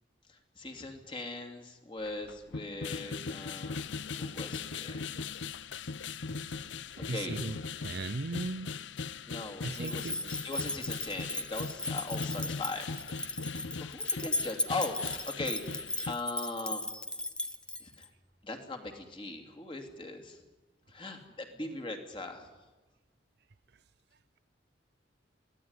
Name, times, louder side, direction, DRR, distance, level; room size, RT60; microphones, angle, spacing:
voice 1, 0.3-3.9 4.2-5.0 7.0-7.6 9.2-12.9 13.5-15.6 16.1-16.9 17.8-18.1 18.4-20.4 20.9-22.5, left 2 dB, 25° left, 4 dB, 2.8 m, -40 dB
sound 1, 2.1-16.2, left 4 dB, 70° left, 0.7 m, -39 dB
voice 2, 7.1-7.5 7.8-8.7 9.6-10.2, right 3 dB, 60° right, 14 dB, 0.7 m, -36 dB
sound 2, 9.7-18.1, left 1 dB, 5° left, 0.8 m, -36 dB
23.0 x 16.5 x 9.7 m, 1.1 s
head